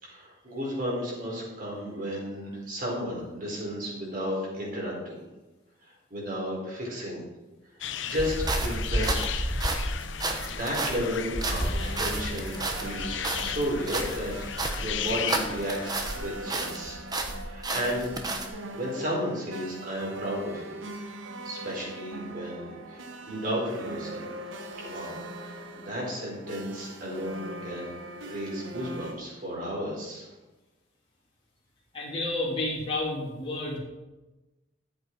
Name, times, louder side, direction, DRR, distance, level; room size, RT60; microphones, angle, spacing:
voice 1, 0.0-5.2 5.8-7.2 8.1-9.5 9.9-11.7 12.0-17.0 17.3-18.1 18.7-20.8 21.4-24.3 24.8-27.9 28.2-30.3, equal, 45° right, -4 dB, 4.3 m, -33 dB
sound 1, 7.8-16.6, left 8 dB, 70° left, 0.7 m, -36 dB
sound 2, 8.2-16.2 16.5-18.5, right 2 dB, 20° right, 1.1 m, -31 dB
sound 3, 11.5-29.1, right 1 dB, 80° right, 1.2 m, -41 dB
voice 2, 31.9-33.8, left 2 dB, 25° left, -7 dB, 2.9 m, -30 dB
13.5 x 8.2 x 4.6 m, 1.1 s
head